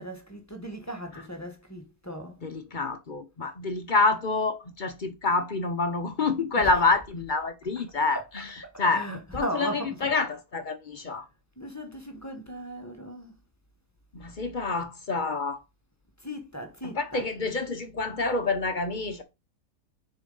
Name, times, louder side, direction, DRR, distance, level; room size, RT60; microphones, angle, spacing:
voice 1, 0.0-2.3 6.6-6.7 7.7-8.5 8.9-10.1 11.6-13.3 16.2-17.3, right 1 dB, 15° left, 0.9 m, -37 dB
voice 2, 2.4-11.3 14.1-15.6 16.8-19.2, left 3 dB, 45° left, 0.7 m, -27 dB
6.7 x 4.5 x 3.8 m
omnidirectional pair, 1.6 m